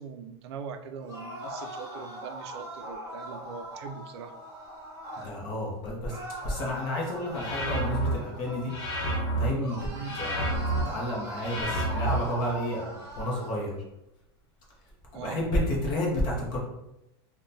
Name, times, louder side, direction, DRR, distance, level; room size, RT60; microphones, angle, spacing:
voice 1, 0.0-4.3 9.9-10.2 15.1-15.4, right 6 dB, 90° right, 7 dB, 0.4 m, -41 dB
sound 1, 1.0-5.3 6.1-9.2 9.6-13.5, right 1 dB, 25° right, 0.9 m, -41 dB
voice 2, 5.2-6.2 6.4-8.7 9.3-9.9 10.2-10.5 10.8-13.8 15.1-16.6, left 1 dB, 35° left, -3 dB, 0.6 m, -31 dB
sound 2, 7.3-8.1 8.7-9.5 10.0-10.8 11.4-12.2, right 2 dB, 75° left, 0.9 m, -29 dB
3.6 x 2.1 x 2.6 m, 0.89 s
supercardioid pair, 170°, 14 cm